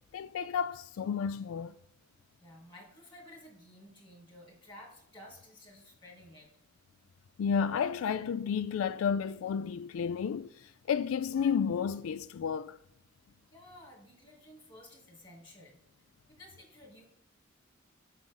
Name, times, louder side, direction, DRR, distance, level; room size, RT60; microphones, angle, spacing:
voice 1, 0.1-1.7 7.4-12.8, left 7 dB, 85° left, 0.3 m, -32 dB
voice 2, 2.4-6.5 13.5-15.8 16.3-17.0, left 1 dB, 25° left, 2.7 m, -53 dB
7.7 x 6.1 x 3.9 m
head